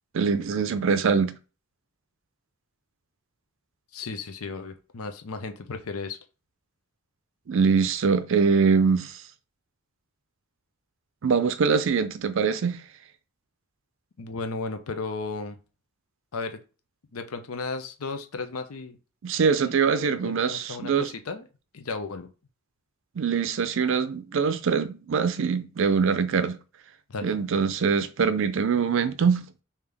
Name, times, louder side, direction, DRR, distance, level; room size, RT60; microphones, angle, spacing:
voice 1, 0.1-1.3 7.5-9.1 11.2-12.8 19.2-21.1 23.2-26.6 27.2-29.4, right 5 dB, 60° right, 0.4 m, -23 dB
voice 2, 3.9-6.2 14.2-15.6 16.3-16.6 17.1-19.0 19.6-21.5 21.7-22.3 27.1-27.3, left 4 dB, 85° left, 0.6 m, -35 dB
3.6 x 2.8 x 3.4 m
head